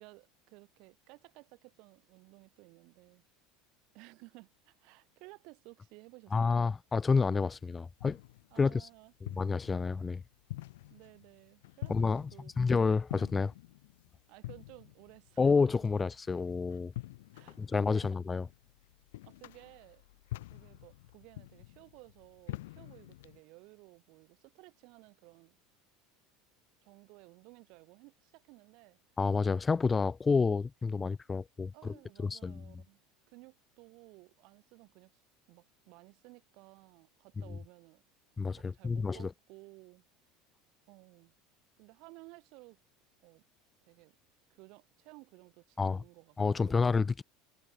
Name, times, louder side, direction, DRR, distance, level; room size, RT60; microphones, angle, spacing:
voice 1, 0.0-3.2 3.9-6.6 8.5-9.1 10.9-12.5 14.3-15.5 17.3-18.0 19.2-20.1 20.5-25.6 26.8-29.0 31.7-33.0 33.3-35.2 35.5-38.0 38.5-40.0 40.9-41.3 41.8-42.8 43.2-43.4 43.8-44.1 44.5-46.9, right 26 dB, 65° right, 4.1 m, -56 dB
voice 2, 6.3-8.2 8.6-8.9 9.3-10.2 11.9-12.3 12.6-13.5 15.4-16.9 17.6-18.5 29.2-31.9 32.2-32.6 38.4-39.3 45.8-46.0 46.4-47.2, left 4 dB, 20° left, 0.7 m, -29 dB
sound 1, 7.5-23.4, left 17 dB, 85° left, 0.9 m, -47 dB
supercardioid pair, 110°, 0 cm